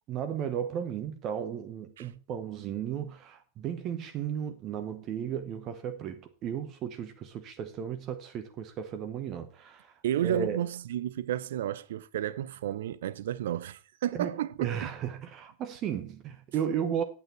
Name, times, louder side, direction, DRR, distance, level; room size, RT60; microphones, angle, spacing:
voice 1, 0.1-9.9 10.2-10.6 14.1-14.3 14.6-17.0, right 8 dB, 35° right, 1.0 m, -34 dB
voice 2, 10.0-14.7, right 11 dB, 60° right, 0.7 m, -32 dB
9.0 x 8.2 x 4.4 m
figure-of-eight pair, 90°, 0 cm